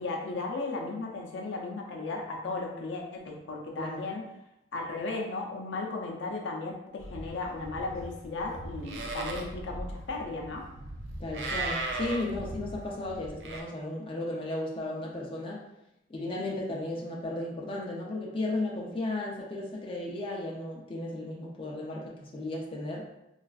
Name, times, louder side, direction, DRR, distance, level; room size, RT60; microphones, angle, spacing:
voice 1, 0.0-4.2 4.7-10.7, left 3 dB, 90° left, 0 dB, 0.5 m, -35 dB
Livestock farm animals working animals, 7.0-13.6, right 2 dB, 75° right, 0.4 m, -38 dB
voice 2, 11.2-15.6 16.1-23.1, left 2 dB, 30° left, -3 dB, 0.5 m, -35 dB
3.2 x 2.4 x 2.3 m, 0.87 s
head